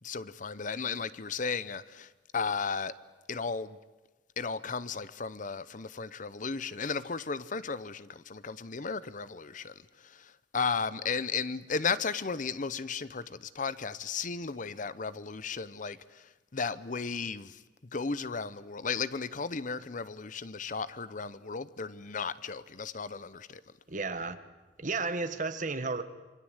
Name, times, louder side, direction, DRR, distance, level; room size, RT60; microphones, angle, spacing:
voice 1, 0.0-2.9 3.3-3.8 4.4-23.6, left 5 dB, 45° left, 0.8 m, -35 dB
voice 2, 23.9-24.4 24.8-26.0, right 3 dB, 45° right, 1.5 m, -33 dB
26.5 x 25.0 x 8.1 m
head